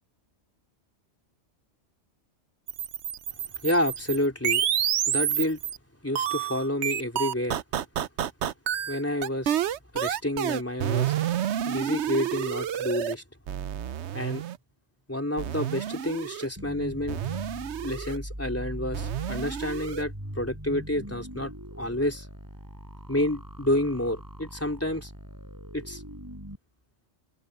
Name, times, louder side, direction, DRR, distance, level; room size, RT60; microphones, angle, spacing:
sound 1, 2.7-5.8 6.2-13.1 13.5-14.6 15.4-16.5 17.1-18.2 18.9-20.0, right 10 dB, 75° right, 1.0 m, -29 dB
voice 1, 3.6-4.7 5.1-5.6 6.0-7.6 8.9-9.5 9.9-11.1 11.6-13.2 14.1-14.4 15.1-17.2 17.8-22.3 23.1-25.1 25.7-26.0, left 1 dB, 10° left, 3.8 m, -29 dB
sound 2, 16.6-26.6, equal, 15° right, 7.3 m, -41 dB
open air
omnidirectional pair, 1.2 m